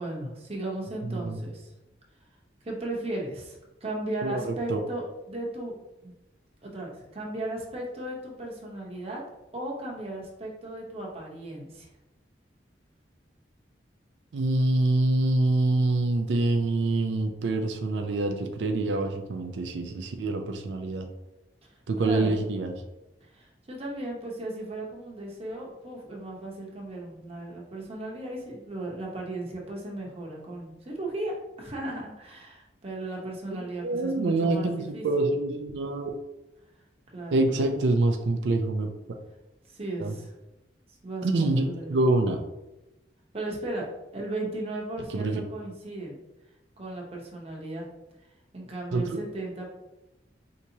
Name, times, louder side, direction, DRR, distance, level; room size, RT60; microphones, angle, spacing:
voice 1, 0.0-1.7 2.6-5.7 6.0-6.1 6.6-9.2 9.5-11.9 21.7-22.4 23.3-35.0 37.1-37.8 39.7-40.3 41.0-41.9 43.3-43.9 44.1-46.2 46.8-47.9 48.5-49.7, right 2 dB, 35° right, -2 dB, 0.9 m, -36 dB
voice 2, 1.0-1.4 4.2-4.8 14.3-21.1 21.9-22.7 33.8-36.1 37.3-38.9 40.0-40.1 41.2-41.6 41.9-42.4 45.1-45.4 48.9-49.2, right 2 dB, 90° right, 4 dB, 0.4 m, -26 dB
4.6 x 2.8 x 2.7 m, 0.98 s
head